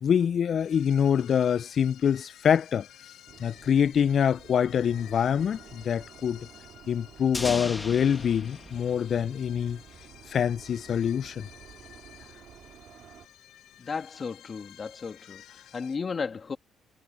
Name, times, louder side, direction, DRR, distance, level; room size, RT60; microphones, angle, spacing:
voice 1, 0.0-2.9 3.4-6.5 6.9-9.8 10.3-11.5, left 8 dB, 55° left, 0.3 m, -25 dB
sound 1, 0.6-16.0, left 12 dB, 85° left, 3.4 m, -53 dB
sound 2, 3.3-13.3, right 9 dB, 70° right, 2.1 m, -52 dB
sound 3, 7.3-10.1, left 2 dB, 20° left, 2.0 m, -38 dB
voice 2, 13.8-16.6, left 5 dB, 40° left, 2.3 m, -34 dB
cardioid pair, 90°, 0 cm